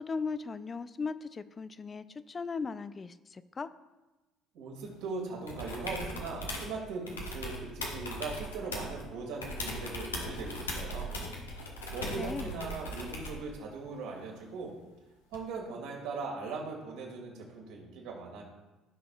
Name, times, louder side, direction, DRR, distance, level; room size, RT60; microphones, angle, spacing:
voice 1, 0.0-3.7 12.2-12.6, left 4 dB, 30° left, 14 dB, 0.4 m, -37 dB
voice 2, 4.5-11.2 11.9-14.8 15.3-18.4, right 4 dB, 65° right, -1 dB, 2.1 m, -39 dB
sound 1, 5.5-6.7 7.1-9.0 9.4-13.4 15.3-15.4, left 1 dB, 90° left, 1.2 m, -39 dB
14.5 x 6.0 x 2.3 m, 1.1 s
hypercardioid pair, 55°, 0 cm